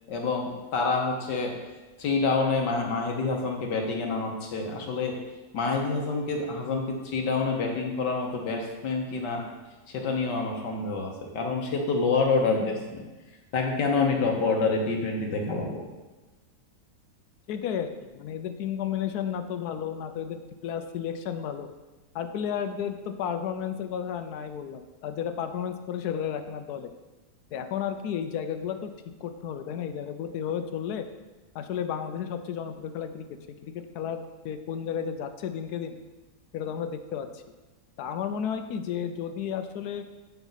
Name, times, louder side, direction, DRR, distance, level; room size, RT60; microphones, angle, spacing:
voice 1, 0.1-1.5 2.0-5.2 5.5-9.4 9.9-13.0 13.5-15.8, left 4 dB, 90° left, 1 dB, 1.8 m, -27 dB
voice 2, 17.5-21.7 22.1-26.9 27.5-28.9 29.2-31.1 31.5-33.3 33.6-35.9 36.5-37.4 38.0-40.0, left 8 dB, 75° left, 9 dB, 1.1 m, -32 dB
9.0 x 5.6 x 4.0 m, 1.1 s
omnidirectional pair, 1.8 m